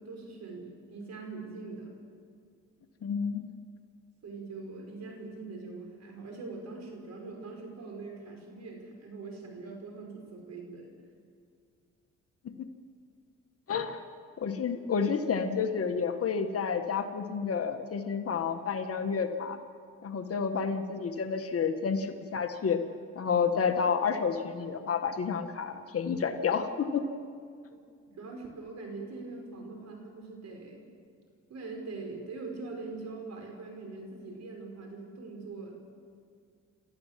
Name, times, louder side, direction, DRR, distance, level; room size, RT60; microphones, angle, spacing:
voice 1, 0.0-1.9 4.2-10.9 28.1-30.8 31.5-35.8, right 3 dB, 60° right, 2 dB, 5.8 m, -42 dB
voice 2, 3.0-3.5 12.4-12.5 13.7-14.0 14.4-19.6 20.0-22.8 23.2-27.0, left 6 dB, 50° left, 6 dB, 1.7 m, -30 dB
29.0 x 14.0 x 7.6 m, 2.2 s
cardioid pair, 90°, 30 cm